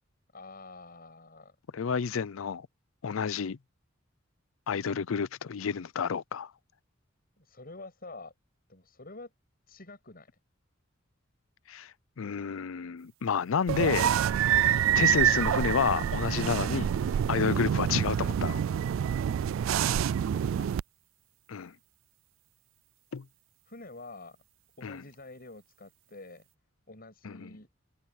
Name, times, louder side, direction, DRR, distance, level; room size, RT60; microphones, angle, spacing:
voice 1, 0.3-1.6 7.4-8.3 8.7-9.3 9.7-10.3 20.2-20.7 23.7-24.4 24.8-26.4 26.9-27.7, left 2 dB, 50° left, 7.8 m, -47 dB
voice 2, 1.7-2.7 3.0-3.6 4.7-6.5 11.7-11.9 12.2-14.1 14.9-16.9 17.3-18.6 21.5-21.7 23.1-23.2 24.8-25.0 27.2-27.5, left 6 dB, 90° left, 0.5 m, -30 dB
sound 1, 13.7-20.8, right 9 dB, 75° right, 0.3 m, -26 dB
head